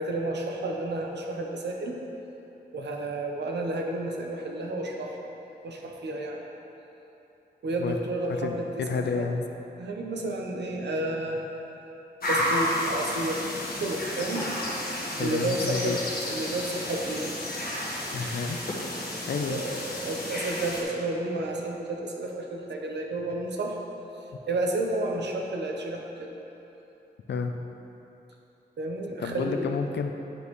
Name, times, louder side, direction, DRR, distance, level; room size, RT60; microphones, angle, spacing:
voice 1, 0.0-2.0 2.7-5.3 5.6-6.4 7.6-9.3 9.8-11.5 12.3-14.5 14.8-14.9 15.2-16.0 16.3-17.3 19.5-23.8 24.5-26.3 28.8-29.7, right 2 dB, 80° right, 1 dB, 0.8 m, -31 dB
voice 2, 8.3-9.5 15.2-16.0 18.1-18.6 19.2-19.6 27.3-27.6 29.2-30.1, left 5 dB, 80° left, 5 dB, 0.5 m, -30 dB
sound 1, 12.2-20.8, left 1 dB, 60° left, 1.3 m, -32 dB
10.0 x 5.3 x 3.1 m, 3.0 s
wide cardioid pair, 145°, 18 cm